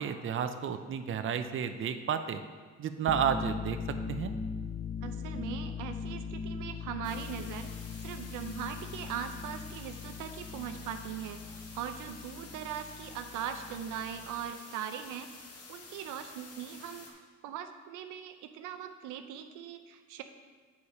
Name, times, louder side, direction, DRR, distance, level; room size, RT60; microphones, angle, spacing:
voice 1, 0.0-2.4 2.8-3.8 4.1-4.3, right 8 dB, 45° right, 8 dB, 0.6 m, -31 dB
sound 1, 3.0-14.5, left 5 dB, 30° left, 0.4 m, -40 dB
voice 2, 5.0-7.7 8.0-15.3 15.7-20.2, right 8 dB, 90° right, 7 dB, 0.6 m, -40 dB
sound 2, 7.0-17.1, left 4 dB, 50° left, 1.2 m, -50 dB
8.5 x 4.2 x 4.8 m, 1.5 s
cardioid pair, 90°, 30 cm